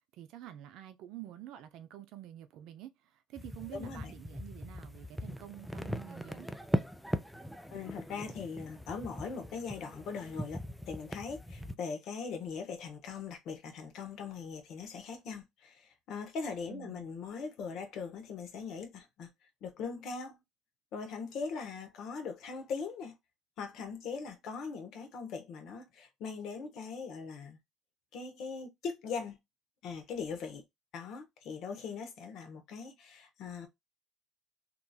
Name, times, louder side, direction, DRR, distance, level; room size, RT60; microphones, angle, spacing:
voice 1, 0.2-2.9 3.3-6.5 16.7-17.1, right 12 dB, 70° right, 0.5 m, -48 dB
sound 1, 3.4-11.7, equal, ahead, 0.4 m, -39 dB
voice 2, 3.7-4.1 7.7-10.6 10.9-19.3 19.6-20.4 20.9-23.1 23.6-27.6 28.1-29.4 29.8-30.6 30.9-33.7, left 5 dB, 65° left, 0.9 m, -40 dB
2.9 x 2.5 x 2.3 m
supercardioid pair, 95°, 0 cm